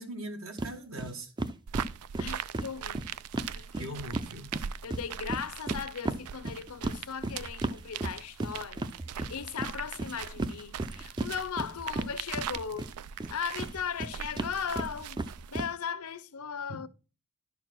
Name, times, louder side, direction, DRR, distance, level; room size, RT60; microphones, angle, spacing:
voice 1, 0.0-1.3 3.8-4.6, right 1 dB, 65° right, 1.5 m, -40 dB
sound 1, 0.6-0.7 1.0-1.1 1.4-4.3 4.5-12.9 13.2-15.7, right 2 dB, 20° right, 0.4 m, -34 dB
sound 2, 1.7-15.6, right 8 dB, 85° right, 0.4 m, -41 dB
voice 2, 2.2-3.0 3.5-4.1 4.8-8.9 9.1-15.2 15.5-16.9, left 7 dB, 80° left, 0.6 m, -37 dB
11.0 x 4.6 x 5.9 m
head